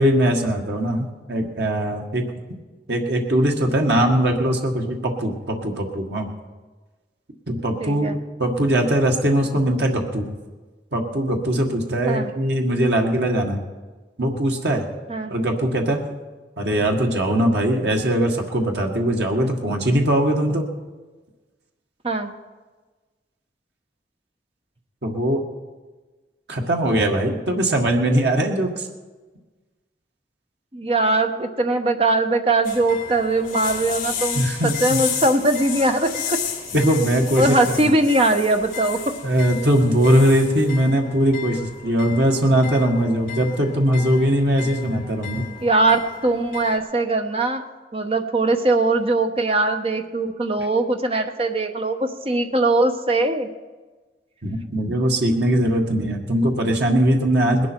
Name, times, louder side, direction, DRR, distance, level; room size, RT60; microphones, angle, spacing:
voice 1, 0.0-2.2 2.9-6.3 7.5-10.3 10.9-13.6 14.2-14.8 15.3-16.0 16.6-20.7 25.0-25.4 26.5-28.9 34.3-35.0 36.7-37.6 37.8-37.9 39.2-45.5 54.4-57.7, right 1 dB, 80° right, 2 dB, 1.7 m, -20 dB
voice 2, 7.8-8.2 12.1-12.3 15.1-15.3 22.0-22.3 30.7-36.4 37.4-39.1 45.6-47.6 47.9-53.5, right 2 dB, 35° right, 6 dB, 1.0 m, -21 dB
sound 1, 32.6-46.8, left 8 dB, 45° left, 2.5 m, -33 dB
20.0 x 11.5 x 4.5 m, 1.3 s
head